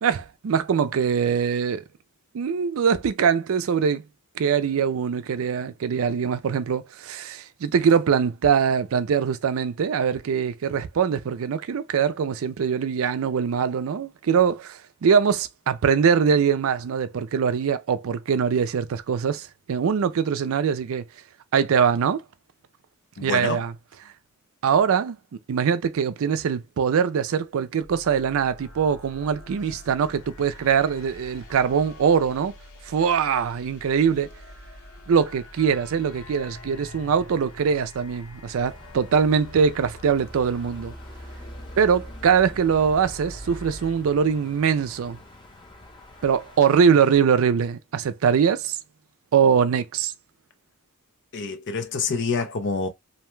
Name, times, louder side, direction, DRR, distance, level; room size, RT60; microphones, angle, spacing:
voice 1, 0.0-1.8 2.3-4.0 4.4-21.0 21.5-22.2 23.2-23.7 24.6-25.2 25.5-32.5 32.9-34.3 35.1-40.9 41.8-45.2 46.2-48.8 49.3-50.1, right 6 dB, 65° right, 0.4 m, -22 dB
voice 2, 23.2-23.6 51.3-52.9, left 4 dB, 55° left, 0.6 m, -27 dB
sound 1, 27.8-43.9, left 1 dB, 85° left, 1.1 m, -45 dB
sound 2, 38.6-47.2, left 1 dB, 20° left, 0.8 m, -44 dB
2.6 x 2.2 x 3.1 m
head